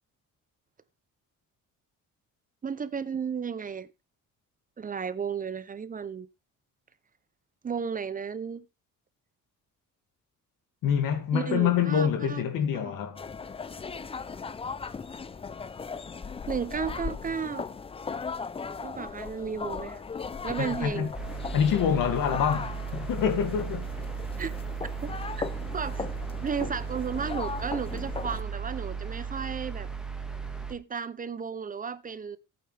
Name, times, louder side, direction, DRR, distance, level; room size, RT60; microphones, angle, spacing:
voice 1, 2.6-3.9 4.8-6.3 7.6-8.6 11.3-12.4 12.7-12.9 16.5-17.7 18.8-20.0 20.4-21.1 24.4-24.5 25.0-25.1 25.4-25.5 25.7-26.1 26.4-29.9 30.7-32.4, right 6 dB, 25° right, 0.6 m, -33 dB
voice 2, 10.8-13.2 20.6-21.1 21.5-23.9, left 8 dB, 90° left, 2.3 m, -26 dB
sound 1, 13.1-28.4, left 5 dB, 20° left, 0.5 m, -38 dB
sound 2, 21.1-30.7, right 6 dB, ahead, 1.7 m, -36 dB
14.5 x 8.7 x 3.4 m
cardioid pair, 140°, 32 cm